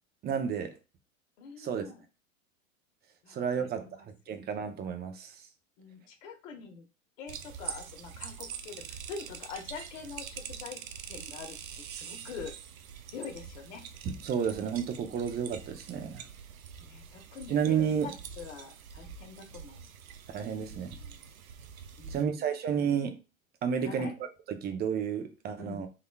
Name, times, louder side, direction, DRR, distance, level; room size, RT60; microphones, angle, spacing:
voice 1, 0.2-0.8 1.6-1.8 3.3-5.3 14.0-16.3 17.5-18.1 20.3-21.0 22.1-23.2 23.6-24.1 24.5-25.9, right 7 dB, 25° right, 0.7 m, -31 dB
voice 2, 1.4-2.0 3.2-4.1 5.8-6.8 7.2-10.8 11.1-11.6 11.9-12.5 13.1-13.8 16.8-17.5 18.0-19.8 20.7-21.2 22.0-22.6 23.8-24.1 25.6-25.9, left 5 dB, 60° left, 1.3 m, -45 dB
sound 1, 7.3-22.2, right 7 dB, 80° right, 0.7 m, -45 dB
3.8 x 3.2 x 2.3 m
hypercardioid pair, 105°, 41 cm